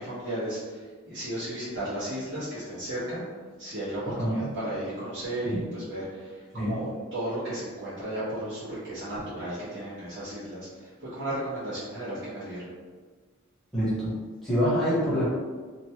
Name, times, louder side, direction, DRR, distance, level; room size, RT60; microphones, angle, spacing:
voice 1, 0.0-3.2 3.6-12.7, right 1 dB, 60° right, -13 dB, 1.2 m, -34 dB
voice 2, 4.0-4.5 5.4-5.6 6.5-6.8 13.7-14.1 14.4-15.3, equal, ahead, -11 dB, 0.9 m, -26 dB
2.9 x 2.3 x 2.9 m, 1.4 s
head